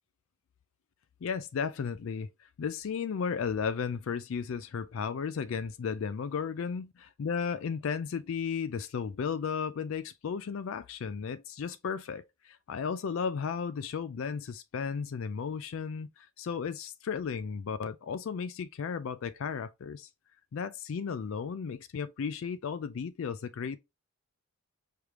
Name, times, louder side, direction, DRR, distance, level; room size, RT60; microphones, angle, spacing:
voice 1, 1.2-20.1 20.5-23.8, left 6 dB, 65° left, 0.4 m, -34 dB
5.0 x 3.3 x 2.9 m
head